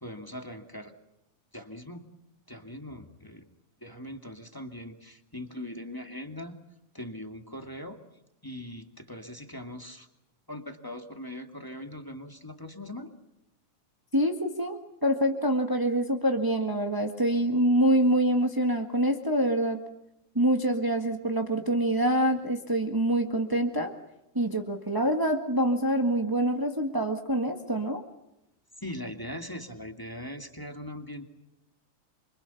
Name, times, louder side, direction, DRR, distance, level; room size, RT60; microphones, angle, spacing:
voice 1, 0.0-0.9 1.5-2.0 2.5-3.4 3.8-6.6 6.9-8.0 8.4-10.1 10.5-13.2 28.8-31.3, left 1 dB, 10° left, 5 dB, 1.6 m, -40 dB
voice 2, 14.1-19.8 20.3-23.9 24.3-28.0, right 1 dB, 20° right, 4 dB, 0.6 m, -25 dB
28.0 x 25.5 x 7.2 m, 0.87 s
omnidirectional pair, 3.6 m